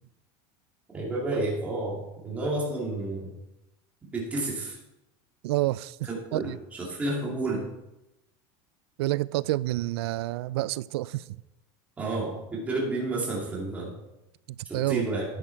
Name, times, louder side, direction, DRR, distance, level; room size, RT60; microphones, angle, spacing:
voice 1, 0.9-3.3 4.1-4.8 6.3-7.7 12.0-13.9 14.9-15.2, right 2 dB, 10° right, 2.3 m, -30 dB
voice 2, 5.4-6.6 9.0-11.4 14.5-15.1, right 17 dB, 80° right, 0.4 m, -29 dB
10.0 x 10.0 x 4.5 m
supercardioid pair, 175°, 13 cm